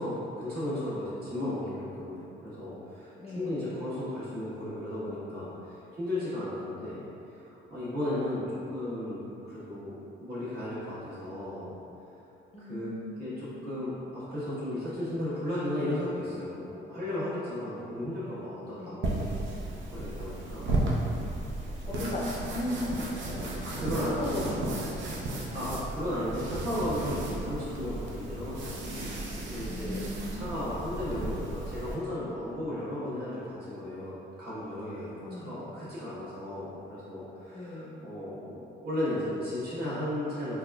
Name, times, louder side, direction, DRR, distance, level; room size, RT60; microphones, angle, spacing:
voice 1, 0.0-7.0 7.3-11.7 12.6-12.9 13.2-20.8 21.8-22.1 23.3-24.2 25.5-28.8 29.5-30.0 30.3-40.6, left 1 dB, 50° right, -10 dB, 1.4 m, -35 dB
voice 2, 3.2-3.6 12.5-13.2 18.8-19.1 20.5-21.3 21.9-23.7 24.0-25.6 29.7-30.5 35.2-35.7 37.5-38.0, left 1 dB, 30° left, -4 dB, 0.5 m, -37 dB
sound 1, 19.0-32.0, right 2 dB, 70° right, 0.6 m, -34 dB
4.0 x 2.4 x 2.3 m, 2.8 s
cardioid pair, 90°, 20 cm